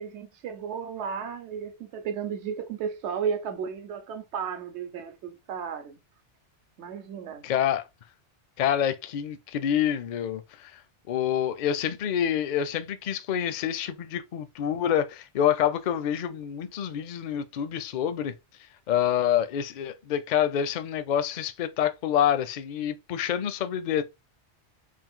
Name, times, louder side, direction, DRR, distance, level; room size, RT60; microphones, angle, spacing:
voice 1, 0.0-6.0 6.8-7.4, right 7 dB, 70° right, 1.1 m, -34 dB
voice 2, 7.4-7.9 8.6-10.8 11.1-18.3 18.9-24.0, left 9 dB, 55° left, 0.5 m, -27 dB
3.8 x 2.6 x 3.6 m
omnidirectional pair, 1.2 m